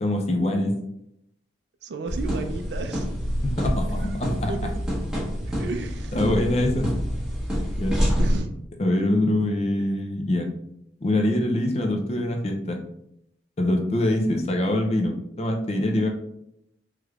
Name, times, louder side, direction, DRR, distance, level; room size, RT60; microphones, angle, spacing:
voice 1, 0.0-0.7 3.4-4.5 6.1-6.9 7.8-7.9 8.8-10.5 11.0-12.8 13.6-16.1, left 1 dB, 35° left, 3 dB, 0.4 m, -24 dB
voice 2, 1.8-3.1 4.0-4.2 4.5-4.8 5.5-6.2 8.2-8.5, right 3 dB, 70° right, 7 dB, 0.4 m, -33 dB
sound 1, 2.1-8.4, equal, 5° right, 0.9 m, -27 dB
3.3 x 3.0 x 2.3 m, 0.78 s
head